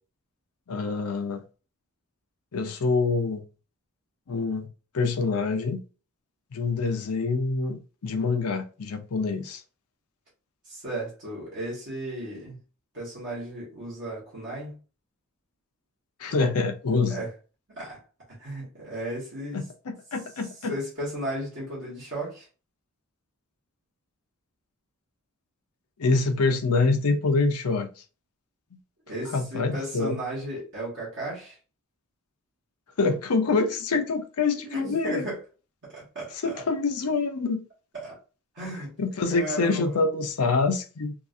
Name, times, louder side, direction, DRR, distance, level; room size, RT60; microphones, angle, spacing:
voice 1, 0.7-1.4 2.5-3.4 4.3-4.7 4.9-5.8 6.5-9.6 16.2-17.2 19.5-20.7 26.0-27.9 28.7-28.8 29.3-30.2 33.0-35.3 36.4-37.6 39.0-41.1, left 3 dB, 85° left, 0.6 m, -26 dB
voice 2, 10.6-12.6 12.9-14.7 17.1-17.3 17.8-18.0 18.3-19.6 20.7-22.4 29.1-31.6 34.6-35.4 35.8-36.6 37.9-38.2 38.5-38.9 39.3-40.0, right 1 dB, 55° right, 1.5 m, -34 dB
3.7 x 2.4 x 2.6 m
head